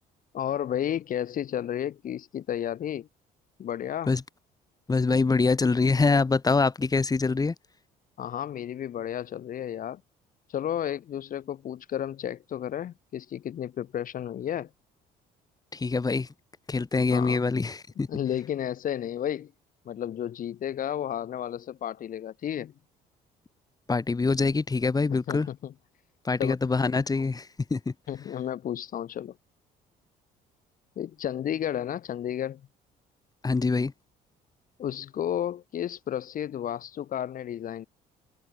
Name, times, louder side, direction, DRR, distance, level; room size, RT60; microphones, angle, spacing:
voice 1, 0.3-3.1 3.6-4.1 8.2-10.0 10.5-14.7 17.1-17.4 18.1-19.5 19.9-22.7 25.1-25.7 26.4-26.5 27.2-27.3 28.1-29.3 31.0-32.6 34.8-37.9, left 10 dB, 55° left, 2.6 m, -32 dB
voice 2, 4.9-7.5 15.7-16.3 16.7-18.1 23.9-25.5 26.2-27.9 33.4-33.9, left 4 dB, 20° left, 7.9 m, -24 dB
cardioid pair, 110°, 17 cm